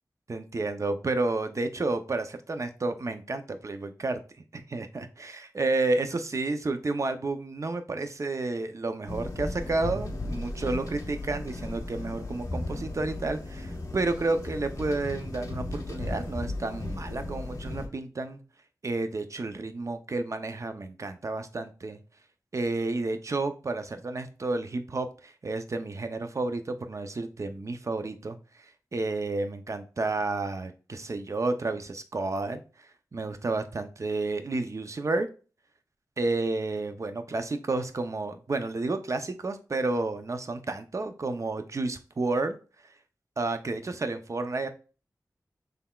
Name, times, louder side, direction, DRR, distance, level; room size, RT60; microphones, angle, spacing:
voice 1, 0.3-4.2 4.5-18.4 18.8-22.0 22.5-35.3 36.2-42.6 43.4-44.7, right 3 dB, 45° right, 8 dB, 0.6 m, -31 dB
sound 1, 9.1-17.9, left 2 dB, 55° left, 1.4 m, -36 dB
5.6 x 3.4 x 2.3 m, 0.36 s
wide cardioid pair, 70°, 7 cm